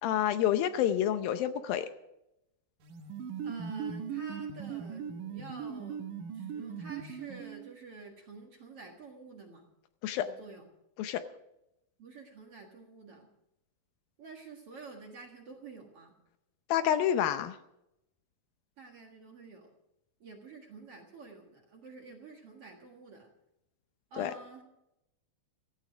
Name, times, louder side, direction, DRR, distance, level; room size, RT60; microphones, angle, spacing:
voice 1, 0.0-1.9 10.0-10.3 11.0-11.2 16.7-17.6 24.2-24.3, left 10 dB, 75° left, 10 dB, 2.4 m, -28 dB
sound 1, 2.8-7.7, right 7 dB, 65° right, 2.5 m, -39 dB
voice 2, 3.4-6.0 6.3-9.7 10.1-10.7 12.0-13.3 14.2-16.1 18.8-19.7 20.2-23.3 24.1-24.6, right 4 dB, 50° right, 1 dB, 2.1 m, -49 dB
15.5 x 15.0 x 5.0 m, 0.85 s
omnidirectional pair, 4.5 m